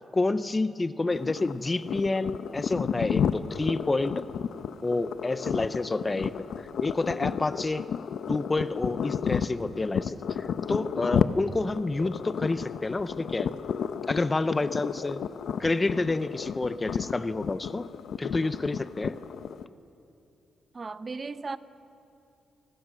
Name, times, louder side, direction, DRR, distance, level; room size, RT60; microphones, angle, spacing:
voice 1, 0.1-4.3 4.8-6.5 6.8-7.9 8.3-13.5 14.1-15.2 15.6-17.9 18.2-19.1, left 2 dB, 20° left, 0.5 m, -29 dB
sound 1, 1.1-19.7, left 7 dB, 70° left, 0.7 m, -32 dB
voice 2, 20.7-21.6, right 4 dB, 30° right, 0.6 m, -35 dB
29.0 x 20.0 x 6.2 m
cardioid pair, 135°, 0 cm